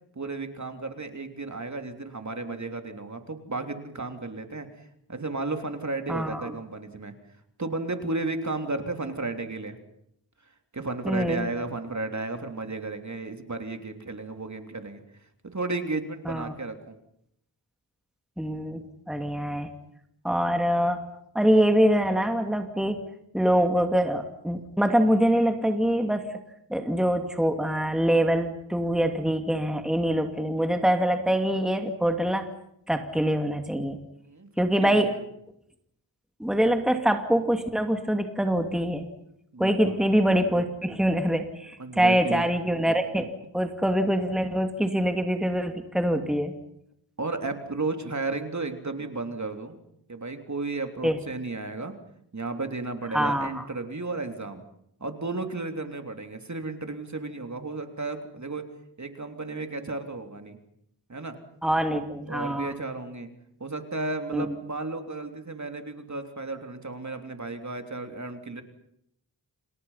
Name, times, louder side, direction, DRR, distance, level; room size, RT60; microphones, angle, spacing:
voice 1, 0.1-4.8 5.1-7.1 7.6-9.8 10.7-15.0 15.4-17.0 34.2-34.5 34.8-35.2 39.5-40.0 41.8-42.4 47.2-49.8 50.1-52.0 52.3-54.6 55.0-58.6 59.0-60.6 61.1-61.4 62.3-63.3 63.6-68.6, right 3 dB, 40° right, 6 dB, 3.3 m, -33 dB
voice 2, 6.1-6.5 11.0-11.5 16.3-16.5 18.4-18.8 19.1-19.7 20.2-21.0 21.3-23.0 23.3-26.2 26.7-32.4 32.9-34.0 34.6-35.1 36.4-39.1 39.6-43.3 43.5-46.5 51.0-51.2 53.1-53.6 61.6-62.7 64.3-64.5, equal, ahead, 6 dB, 2.6 m, -24 dB
30.0 x 28.0 x 5.8 m, 0.75 s
wide cardioid pair, 80°, 43 cm